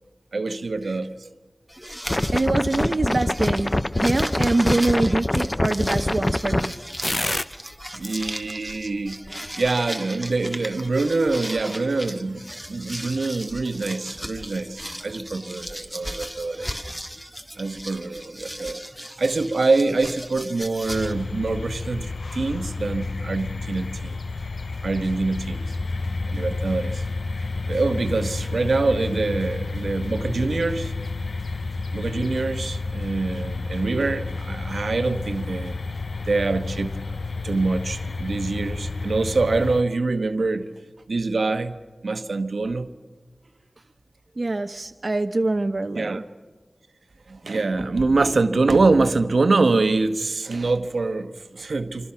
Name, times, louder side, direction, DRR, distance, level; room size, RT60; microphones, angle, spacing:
voice 1, 0.3-1.3 7.9-9.2 9.6-16.7 17.6-18.8 19.2-24.2 24.8-25.7 26.3-27.0 27.7-30.9 31.9-35.7 36.3-36.9 37.4-40.7 41.1-41.8 42.0-42.9 45.9-46.2 47.3-52.1, right 3 dB, 85° right, 1.1 m, -24 dB
sound 1, 1.7-21.1, equal, ahead, 1.8 m, -36 dB
sound 2, 2.1-6.7 7.0-7.4, left 1 dB, 35° left, 0.7 m, -24 dB
voice 2, 2.3-6.7 44.4-46.2, right 2 dB, 55° right, 0.8 m, -24 dB
sound 3, 20.9-39.8, left 3 dB, 75° left, 0.6 m, -30 dB
26.5 x 25.0 x 5.8 m
wide cardioid pair, 45°, 0 cm